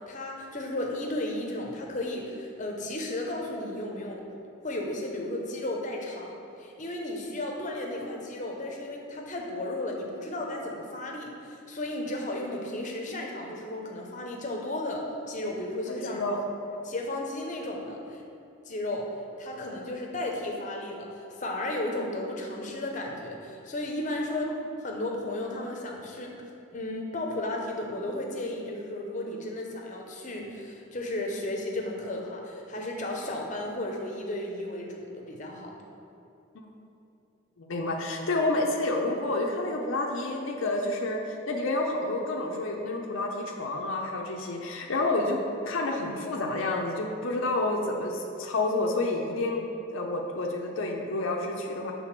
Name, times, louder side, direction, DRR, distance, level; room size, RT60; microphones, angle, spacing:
voice 1, 0.1-4.2 4.6-16.2 16.8-18.2 18.7-19.1 19.4-24.5 24.8-26.4 26.7-35.7, left 1 dB, 35° left, 0 dB, 0.7 m, -34 dB
voice 2, 16.0-16.4 36.5-36.7 37.6-49.6 49.9-51.9, left 2 dB, 70° left, 0 dB, 0.5 m, -29 dB
5.9 x 3.5 x 5.9 m, 2.7 s
head